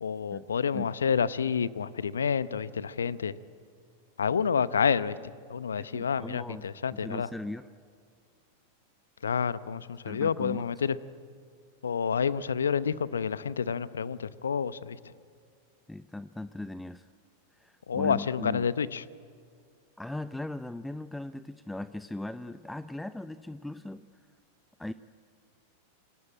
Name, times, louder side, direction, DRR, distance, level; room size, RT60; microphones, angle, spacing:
voice 1, 0.0-3.3 4.2-5.2 5.5-7.3 9.2-11.0 11.8-15.0 17.9-19.0, left 6 dB, 80° left, 17 dB, 0.8 m, -29 dB
voice 2, 5.9-7.7 10.1-10.7 15.9-17.1 17.5-18.7 20.0-24.0 24.8-24.9, left 2 dB, 5° left, 13 dB, 0.6 m, -39 dB
28.0 x 22.5 x 8.9 m, 2.1 s
figure-of-eight pair, 90°, 0 cm